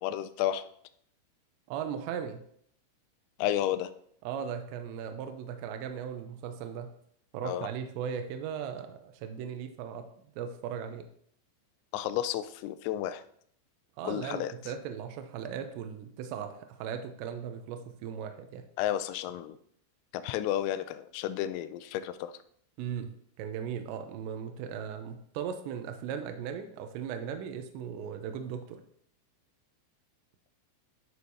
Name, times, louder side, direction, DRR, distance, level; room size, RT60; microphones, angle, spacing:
voice 1, 0.0-0.7 3.4-3.9 7.4-7.7 11.9-13.2 14.0-14.5 18.8-19.6 20.1-22.3, left 12 dB, 90° left, 12 dB, 3.3 m, -32 dB
voice 2, 1.7-2.4 4.2-6.9 7.3-10.1 10.4-11.1 14.0-18.7 22.8-28.8, right 8 dB, 90° right, 6 dB, 2.6 m, -38 dB
11.0 x 6.5 x 2.8 m, 0.66 s
omnidirectional pair, 5.9 m